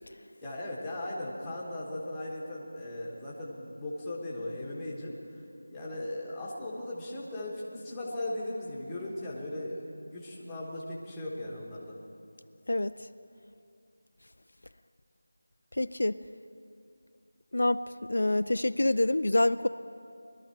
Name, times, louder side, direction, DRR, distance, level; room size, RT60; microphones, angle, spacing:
voice 1, 0.4-5.4 5.7-12.0, left 1 dB, 5° left, -7 dB, 1.1 m, -38 dB
voice 2, 15.7-16.2 17.5-17.8 18.1-19.7, left 1 dB, 65° left, 12 dB, 0.3 m, -26 dB
20.5 x 12.5 x 4.5 m, 2.5 s
figure-of-eight pair, 180°, 0 cm